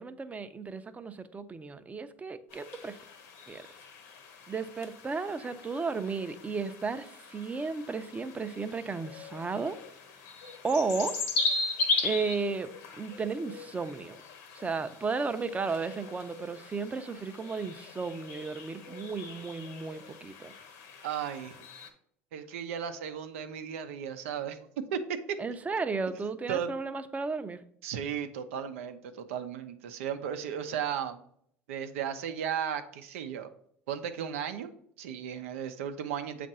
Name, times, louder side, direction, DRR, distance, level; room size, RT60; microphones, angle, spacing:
voice 1, 0.0-3.0 3.5-3.6 4.5-9.8 10.6-11.1 12.0-12.7 13.0-14.2 14.5-20.5 25.4-27.6, right 4 dB, 20° right, 10 dB, 0.6 m, -34 dB
sound 1, 2.5-21.9, left 3 dB, 75° left, 1.1 m, -38 dB
voice 2, 21.0-21.6 22.3-25.4 26.5-26.7 27.8-31.2 31.7-33.5 33.9-34.7 35.0-36.5, right 8 dB, 85° right, 8 dB, 0.6 m, -35 dB
7.5 x 2.5 x 5.4 m, 0.66 s
hypercardioid pair, 85°, 7 cm